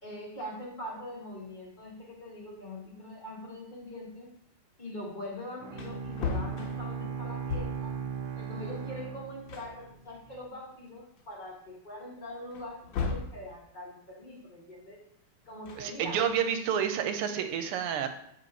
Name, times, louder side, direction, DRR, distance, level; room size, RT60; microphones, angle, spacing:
voice 1, 0.0-4.3 4.8-8.0 8.3-15.0 15.5-16.2, left 1 dB, 30° left, -2 dB, 1.0 m, -43 dB
Wood, 5.3-5.4 5.7-8.0 9.1-9.2 9.5-10.7 11.2-11.3 12.5-13.4 15.5-16.4, left 5 dB, 70° left, 1.4 m, -37 dB
Bowed string instrument, 5.6-10.0, right 6 dB, 70° right, 1.0 m, -38 dB
voice 2, 15.8-18.1, right 8 dB, 90° right, 8 dB, 1.6 m, -29 dB
8.5 x 3.2 x 3.9 m, 0.75 s
omnidirectional pair, 2.4 m